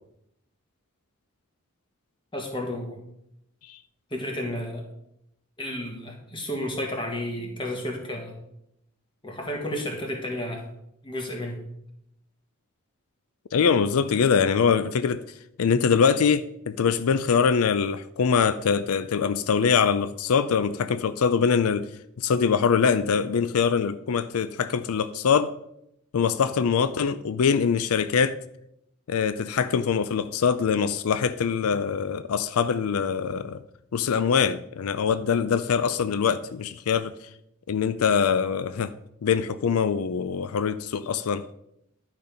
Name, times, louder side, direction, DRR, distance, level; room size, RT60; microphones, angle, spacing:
voice 1, 2.3-3.0 4.1-4.9 5.6-8.3 9.2-10.7 11.0-11.6, left 1 dB, 20° left, 1.6 m, -32 dB
voice 2, 13.5-15.2 15.6-21.9 22.2-25.5 26.1-28.4 29.1-33.6 33.9-37.1 37.7-38.9 39.2-41.4, left 6 dB, 90° left, 0.4 m, -23 dB
11.0 x 5.3 x 5.3 m
head